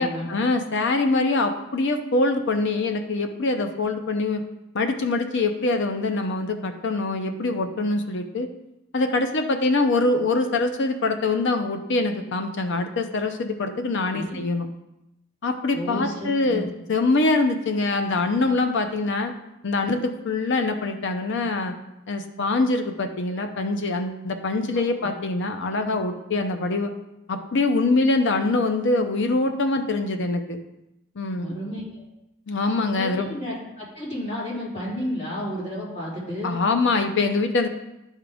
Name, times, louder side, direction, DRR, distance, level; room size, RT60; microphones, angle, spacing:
voice 1, 0.0-4.4 4.7-8.5 8.9-14.7 15.4-19.3 19.6-21.7 22.1-26.9 27.3-30.6 31.2-31.5 32.5-33.3 36.4-37.7, left 3 dB, 55° left, 6 dB, 0.6 m, -24 dB
voice 2, 15.7-16.6 24.7-25.1 31.4-32.0 32.9-36.6, equal, 30° left, -7 dB, 2.7 m, -32 dB
11.0 x 3.7 x 3.5 m, 0.89 s
head